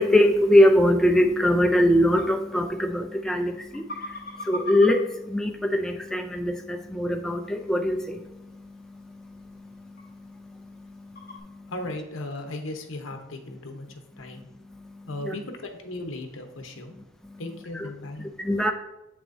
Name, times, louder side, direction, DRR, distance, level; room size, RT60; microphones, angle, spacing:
voice 1, 0.0-11.7 14.2-15.4 17.2-17.4 17.7-17.9 18.2-18.7, left 1 dB, 5° left, 4 dB, 0.3 m, -24 dB
sound 1, 1.1-11.4, left 1 dB, 50° left, 2.0 m, -44 dB
voice 2, 11.7-13.9 14.2-14.5 15.1-16.9 17.4-18.3, left 2 dB, 75° left, 5 dB, 0.9 m, -36 dB
7.8 x 6.0 x 2.6 m, 0.90 s
head